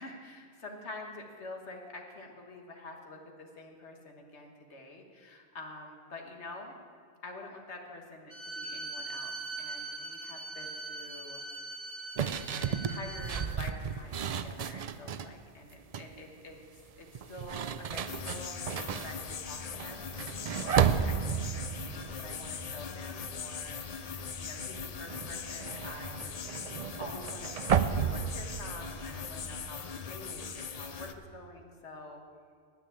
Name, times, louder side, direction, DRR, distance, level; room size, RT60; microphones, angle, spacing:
voice 1, 0.0-6.7 7.2-11.4 12.6-32.2, left 2 dB, 70° left, 2 dB, 1.7 m, -47 dB
Bowed string instrument, 8.3-13.5, right 2 dB, 50° right, 1.1 m, -41 dB
sound 1, 12.2-15.3 15.7-16.2 17.1-23.3 23.6-24.0 24.2-29.7, right 7 dB, 80° right, 0.3 m, -33 dB
sound 2, 18.1-31.1, left 6 dB, 45° left, 0.5 m, -41 dB
10.0 x 9.5 x 8.8 m, 2.1 s
omnidirectional pair, 1.2 m